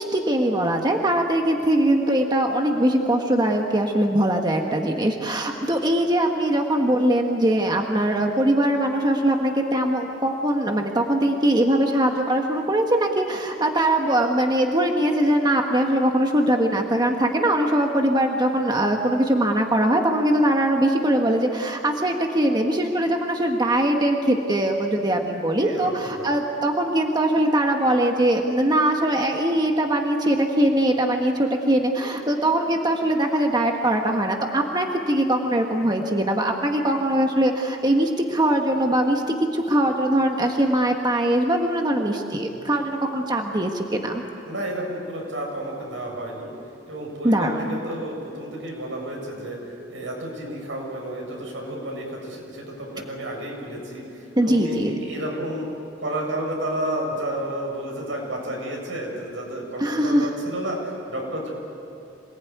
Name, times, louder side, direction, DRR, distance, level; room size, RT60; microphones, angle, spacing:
voice 1, 0.0-44.1 47.2-47.8 54.4-54.9 59.8-60.3, right 1 dB, 20° right, 2 dB, 1.5 m, -21 dB
voice 2, 25.6-26.3 44.5-46.5 46.9-55.7 56.0-61.5, right 1 dB, 85° right, -1 dB, 7.3 m, -31 dB
27.0 x 19.5 x 9.4 m, 2.8 s
head